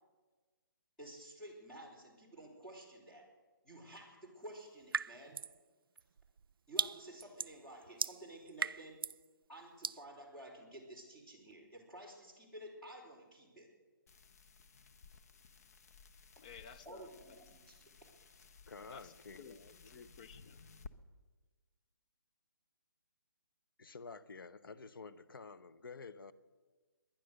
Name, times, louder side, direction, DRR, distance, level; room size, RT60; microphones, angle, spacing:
voice 1, 1.0-3.3 3.6-5.4 6.7-9.0 9.5-13.7 16.8-17.8, right 1 dB, 5° left, 3.4 m, -52 dB
sound 1, 4.9-5.6 6.0-9.2 9.8-10.0, right 6 dB, 85° right, 0.4 m, -38 dB
sound 2, 14.1-20.9, left 5 dB, 45° left, 0.9 m, -58 dB
voice 2, 16.4-17.4 18.9-20.6, left 7 dB, 20° left, 0.5 m, -55 dB
voice 3, 18.7-20.0 23.8-26.3, left 4 dB, 75° left, 1.0 m, -51 dB
21.0 x 10.5 x 6.6 m
hypercardioid pair, 165°, 12 cm